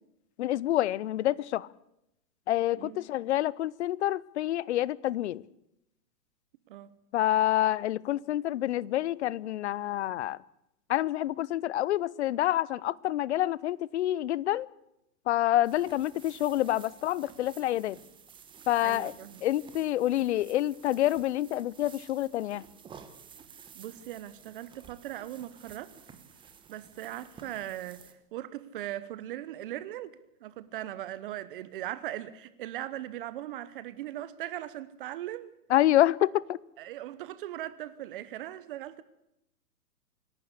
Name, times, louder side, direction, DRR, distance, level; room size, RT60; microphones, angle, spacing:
voice 1, 0.4-1.7 2.5-5.4 7.1-10.4 10.9-14.7 15.3-18.0 18.7-19.1 19.4-22.6 35.7-36.6, left 13 dB, 50° left, 0.7 m, -27 dB
sound 1, 15.6-28.1, right 7 dB, 10° right, 1.3 m, -52 dB
voice 2, 18.8-19.4 23.7-25.9 26.7-28.0 28.3-30.1 30.4-35.5 36.8-39.0, right 13 dB, 35° right, 0.9 m, -39 dB
27.0 x 12.0 x 8.2 m
hypercardioid pair, 150°, 46 cm